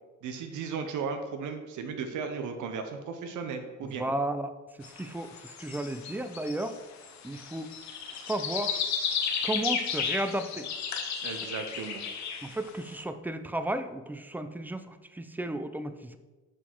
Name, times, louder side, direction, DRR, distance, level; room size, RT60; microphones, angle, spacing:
voice 1, 0.2-4.0 11.2-12.0, right 5 dB, 80° right, 6 dB, 0.7 m, -35 dB
voice 2, 3.8-4.5 4.8-6.8 7.2-7.7 8.2-8.8 9.4-10.7 12.4-16.2, right 1 dB, 5° right, 10 dB, 0.3 m, -34 dB
sound 1, 4.8-12.8, left 6 dB, 65° left, 0.8 m, -34 dB
6.1 x 3.9 x 4.4 m, 1.2 s
cardioid pair, 90°, 30 cm